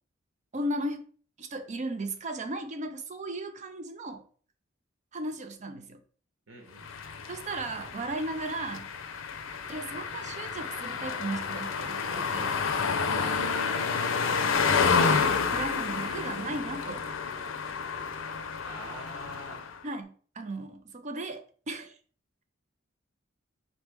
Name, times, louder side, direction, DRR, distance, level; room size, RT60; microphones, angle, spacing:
voice 1, 0.5-1.0 1.4-4.2 5.1-6.0 7.3-8.9 9.7-12.6 15.1-17.1 19.8-22.0, right 2 dB, 35° right, 0.5 m, -36 dB
voice 2, 6.5-6.9 14.0-14.8 18.6-19.7, right 1 dB, 85° right, 1.2 m, -47 dB
sound 1, 6.8-19.8, left 5 dB, 80° left, 0.5 m, -30 dB
4.1 x 3.1 x 3.4 m
head